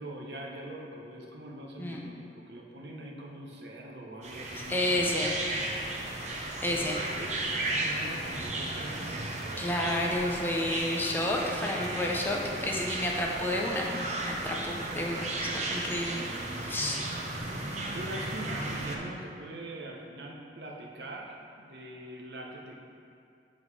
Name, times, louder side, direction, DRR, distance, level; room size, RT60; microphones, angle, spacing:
voice 1, 0.0-5.0 5.5-5.7 6.7-9.7 15.4-15.7 16.9-17.1 17.9-22.8, right 1 dB, 70° right, -1 dB, 0.8 m, -43 dB
sound 1, 4.2-19.0, right 2 dB, 40° right, 0.7 m, -35 dB
voice 2, 4.5-5.4 6.6-7.0 9.6-13.9 14.2-15.3 15.7-16.2 16.5-17.0, left 1 dB, 10° left, -2 dB, 0.6 m, -30 dB
7.8 x 3.9 x 4.7 m, 2.5 s
head